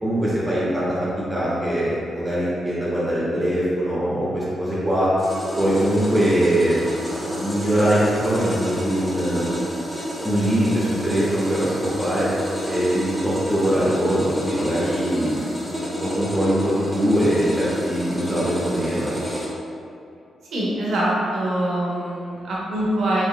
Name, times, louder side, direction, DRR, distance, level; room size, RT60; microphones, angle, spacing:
voice 1, 0.0-5.1 5.5-6.8 7.2-9.5 10.2-12.3 12.7-19.2, right 1 dB, 15° right, -9 dB, 1.1 m, -22 dB
sound 1, 5.2-19.5, equal, 10° left, 1.1 m, -30 dB
voice 2, 20.5-23.2, right 1 dB, 70° right, -6 dB, 0.8 m, -24 dB
3.9 x 3.1 x 2.2 m, 2.5 s
supercardioid pair, 45°, 0 cm